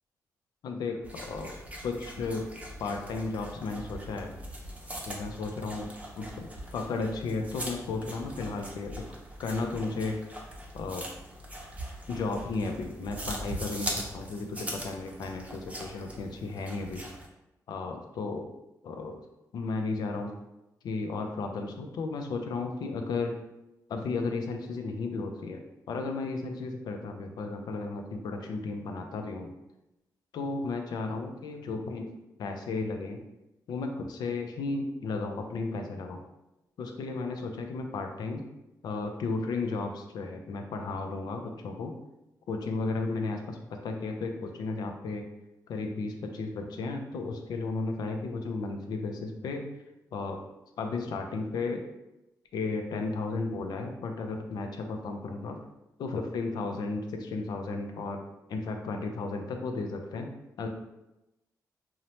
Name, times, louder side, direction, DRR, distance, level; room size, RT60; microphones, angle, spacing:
voice 1, 0.6-1.5 1.8-2.4 2.8-4.3 5.1-9.1 9.4-10.2 10.7-11.1 12.1-17.0 17.7-18.5 18.8-19.1 19.5-20.3 20.8-23.3 23.9-29.5 30.3-32.1 32.4-33.2 33.7-36.2 36.8-38.4 38.8-41.9 42.5-45.2 45.7-49.6 50.1-50.4 50.8-51.8 52.5-55.6 56.0-58.2 58.5-60.3 60.6-60.7, left 3 dB, 75° left, 4 dB, 0.4 m, -34 dB
sound 1, 1.0-17.3, right 1 dB, 20° right, 0.6 m, -41 dB
2.7 x 2.1 x 2.9 m, 0.94 s
cardioid pair, 75°, 7 cm